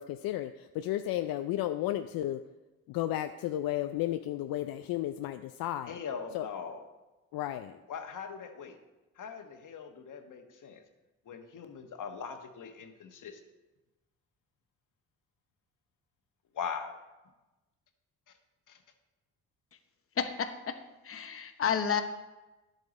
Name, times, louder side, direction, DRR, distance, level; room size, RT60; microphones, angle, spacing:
voice 1, 0.0-2.4 2.9-6.0 6.3-6.5 7.3-7.8, left 13 dB, 75° left, 8 dB, 0.5 m, -33 dB
voice 2, 5.9-6.8 7.9-8.8 9.1-10.8 11.2-13.4 16.5-17.0 18.3-18.4 18.7-18.8, left 6 dB, 60° left, 6 dB, 1.4 m, -41 dB
voice 3, 20.2-20.8 21.0-22.0, left 7 dB, 40° left, 7 dB, 1.0 m, -31 dB
10.5 x 8.2 x 4.1 m, 1.1 s
supercardioid pair, 70°, 36 cm